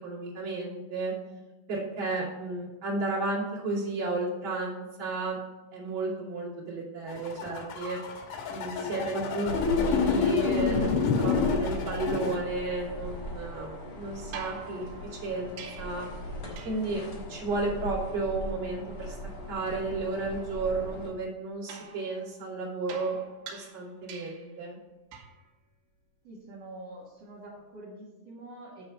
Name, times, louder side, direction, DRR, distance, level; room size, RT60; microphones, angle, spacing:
voice 1, 0.0-1.1 1.7-5.4 5.7-8.0 8.5-16.1 16.6-19.2 19.5-23.2 23.5-24.8, right 3 dB, 35° right, -7 dB, 2.9 m, -33 dB
sound 1, 7.1-12.4, left 5 dB, 65° left, 2.1 m, -28 dB
sound 2, 9.5-21.1, equal, 85° left, 0.9 m, -38 dB
sound 3, 14.3-16.1 16.6-17.0 21.7-24.6 25.1-25.5 27.4-27.5, right 6 dB, 80° right, 3.1 m, -46 dB
voice 2, 26.2-28.9, right 1 dB, 50° right, -7 dB, 2.2 m, -46 dB
8.9 x 4.3 x 6.2 m, 1.2 s
omnidirectional pair, 4.7 m